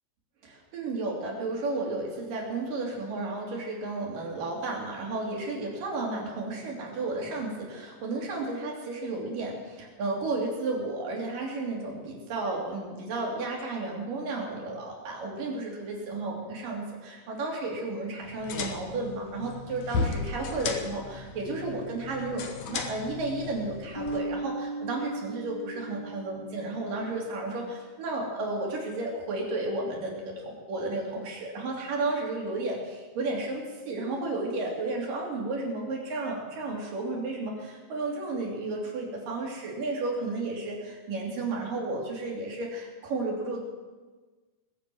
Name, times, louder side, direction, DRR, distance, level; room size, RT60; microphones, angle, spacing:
voice 1, 0.4-43.6, right 2 dB, 75° right, -1 dB, 4.5 m, -33 dB
sound 1, 18.2-24.2, left 4 dB, 65° left, 2.4 m, -35 dB
sound 2, 23.9-27.3, right 2 dB, 30° left, 0.4 m, -37 dB
20.5 x 8.3 x 7.8 m, 1.3 s
omnidirectional pair, 3.9 m